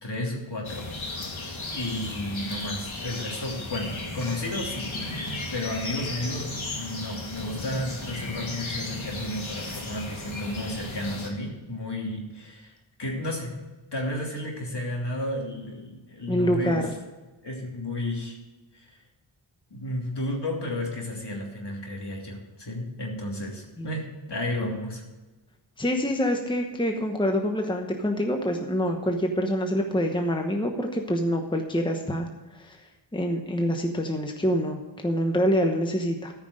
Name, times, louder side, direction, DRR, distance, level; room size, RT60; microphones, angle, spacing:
voice 1, 0.0-0.9 1.7-5.2 5.5-12.7 13.0-13.6 13.9-16.9 17.4-18.4 18.7-19.0 19.7-25.0, left 1 dB, 60° left, -1 dB, 3.0 m, -32 dB
sound 1, 0.6-11.3, left 2 dB, 75° left, 2.1 m, -35 dB
voice 2, 16.3-16.9 23.8-23.9 25.8-32.3 32.5-36.3, equal, 10° left, 4 dB, 1.0 m, -26 dB
13.5 x 5.9 x 6.4 m, 1.2 s
wide cardioid pair, 85°, 47 cm